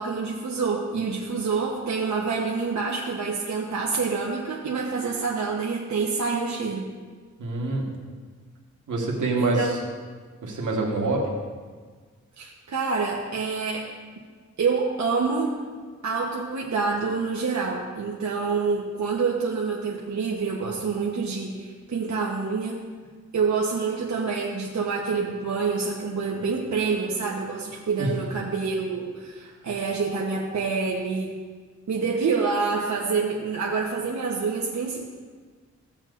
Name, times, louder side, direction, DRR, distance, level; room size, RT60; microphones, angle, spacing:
voice 1, 0.0-6.9 9.4-9.8 12.4-13.9 14.6-15.5 16.0-22.8 23.3-31.3 31.9-35.0, right 4 dB, 70° right, -3 dB, 1.1 m, -27 dB
voice 2, 7.4-7.9 8.9-9.8 10.4-11.3 28.0-28.2, right 2 dB, 85° right, -1 dB, 1.7 m, -26 dB
15.5 x 7.2 x 2.6 m, 1.5 s
cardioid pair, 60°, 30 cm